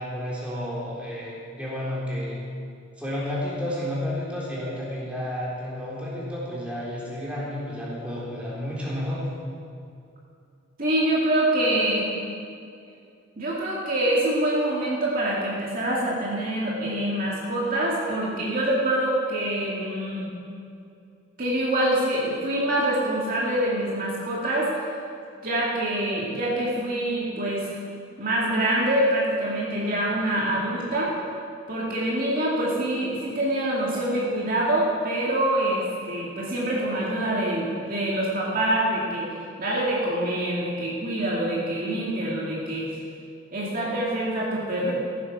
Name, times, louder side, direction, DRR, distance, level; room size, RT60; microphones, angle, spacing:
voice 1, 0.0-2.4 3.0-9.3, left 1 dB, 5° right, -7 dB, 3.7 m, -31 dB
voice 2, 10.8-12.1 13.4-20.3 21.4-24.7 25.4-27.8 28.2-31.1 31.7-42.9 43.5-44.9, right 1 dB, 45° right, -5 dB, 2.3 m, -25 dB
15.0 x 10.0 x 6.2 m, 2.5 s
head